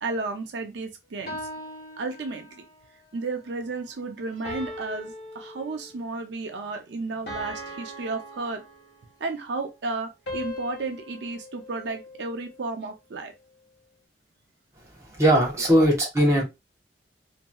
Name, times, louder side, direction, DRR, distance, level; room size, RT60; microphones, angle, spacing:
voice 1, 0.0-1.4 2.0-2.6 3.1-8.6 9.2-13.3 15.6-15.7, right 3 dB, 75° right, 0.5 m, -33 dB
sound 1, 1.3-2.8 4.4-6.1 7.3-9.2 10.3-12.6, left 1 dB, 60° left, 1.1 m, -39 dB
voice 2, 15.1-16.4, equal, 15° right, 0.9 m, -19 dB
2.9 x 2.6 x 2.2 m
head